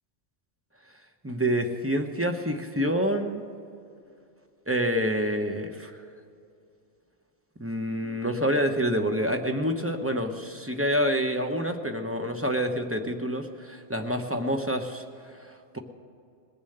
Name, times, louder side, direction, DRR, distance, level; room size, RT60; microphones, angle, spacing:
voice 1, 1.2-3.4 4.7-5.9 7.6-15.0 15.4-15.8, equal, 15° right, 4 dB, 0.8 m, -27 dB
20.0 x 7.0 x 7.9 m, 2.5 s
omnidirectional pair, 1.3 m